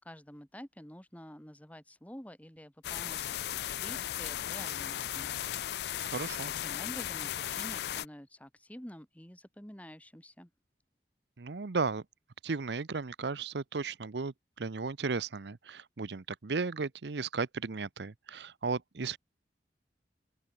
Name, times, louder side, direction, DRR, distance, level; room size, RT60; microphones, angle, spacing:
voice 1, 0.0-3.3 3.8-5.3 6.4-10.5, equal, 10° left, 2.0 m, -48 dB
sound 1, 2.8-8.0, left 11 dB, 65° left, 0.4 m, -36 dB
voice 2, 6.0-6.5 11.4-12.0 12.4-19.2, right 4 dB, 75° right, 0.7 m, -35 dB
open air
head